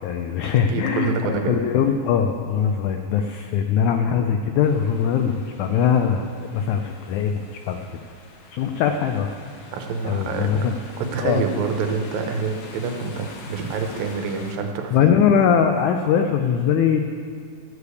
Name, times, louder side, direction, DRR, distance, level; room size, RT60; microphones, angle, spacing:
voice 1, 0.0-8.0 8.5-9.3 10.0-10.7 11.2-11.4 14.9-17.0, left 7 dB, 85° left, 5 dB, 1.7 m, -21 dB
voice 2, 0.5-1.6 9.7-15.2, right 4 dB, 80° right, 4 dB, 2.7 m, -27 dB
sound 1, 4.6-14.6, left 3 dB, 70° left, 1.4 m, -46 dB
13.5 x 5.0 x 8.1 m, 2.1 s
omnidirectional pair, 4.1 m